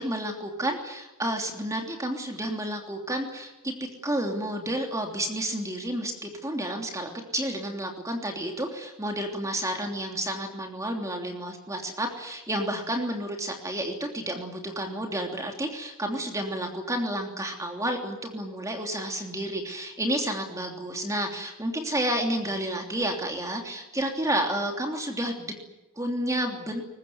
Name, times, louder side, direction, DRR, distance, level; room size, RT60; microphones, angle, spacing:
voice 1, 0.0-25.6 26.0-26.8, right 1 dB, 15° right, 2 dB, 3.1 m, -30 dB
23.5 x 20.0 x 9.4 m, 1.0 s
head